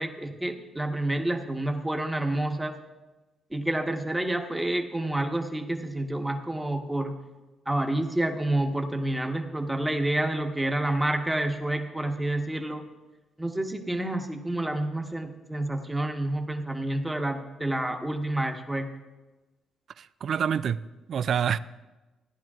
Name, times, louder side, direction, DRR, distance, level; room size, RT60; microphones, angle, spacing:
voice 1, 0.0-2.7 3.5-7.2 7.7-12.9 13.4-18.9, right 1 dB, 10° right, 1.1 m, -29 dB
voice 2, 20.0-21.6, right 8 dB, 60° right, 0.3 m, -27 dB
16.5 x 10.5 x 2.4 m
cardioid pair, 90°, 0 cm